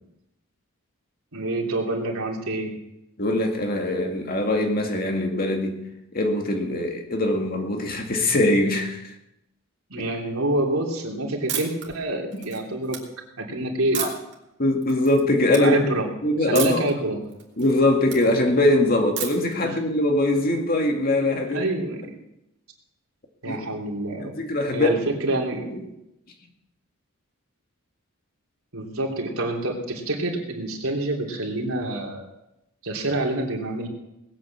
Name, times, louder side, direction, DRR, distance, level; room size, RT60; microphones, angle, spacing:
voice 1, 1.3-2.7 9.9-13.0 13.4-14.1 15.6-16.1 16.5-17.2 19.6-19.8 21.5-22.2 23.4-24.3 24.7-25.8 28.7-32.3 32.8-33.9, right 2 dB, 85° right, 0 dB, 3.3 m, -27 dB
voice 2, 3.2-5.8 6.1-9.1 12.3-12.4 13.9-14.1 14.6-15.8 16.2-16.8 17.6-21.6 23.4-23.6 24.2-24.9 25.7-25.8, left 1 dB, 45° left, 3 dB, 2.2 m, -22 dB
sound 1, 11.5-11.9 12.3-13.0 13.9-14.3 14.8-15.2 15.5-15.6 16.5-16.9 17.3-18.2 19.2-19.5, right 10 dB, 55° right, 3.1 m, -31 dB
19.5 x 8.6 x 7.3 m, 0.88 s
head